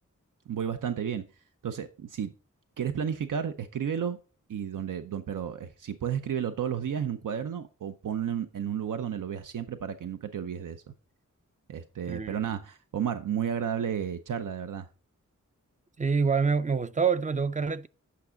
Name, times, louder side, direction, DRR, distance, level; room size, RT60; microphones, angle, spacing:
voice 1, 0.5-1.2 1.6-2.3 2.8-4.2 4.5-10.8 11.7-14.9, right 8 dB, 85° right, 0.6 m, -32 dB
voice 2, 12.1-12.4 16.0-17.9, right 5 dB, 25° right, 0.4 m, -26 dB
8.5 x 6.0 x 3.8 m
wide cardioid pair, 120°, 31 cm